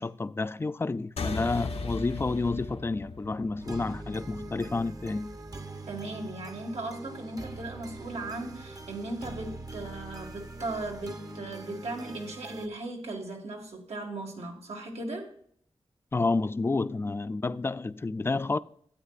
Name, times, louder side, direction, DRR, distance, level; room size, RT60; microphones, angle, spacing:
voice 1, 0.0-5.3 16.1-18.6, left 3 dB, 25° left, 0.3 m, -30 dB
sound 1, 1.2-6.0, left 3 dB, 75° left, 0.9 m, -38 dB
sound 2, 3.6-12.7, right 2 dB, 35° right, 0.8 m, -43 dB
voice 2, 5.9-15.3, right 2 dB, 85° right, 2.0 m, -37 dB
12.5 x 8.9 x 2.5 m
wide cardioid pair, 125°, 10 cm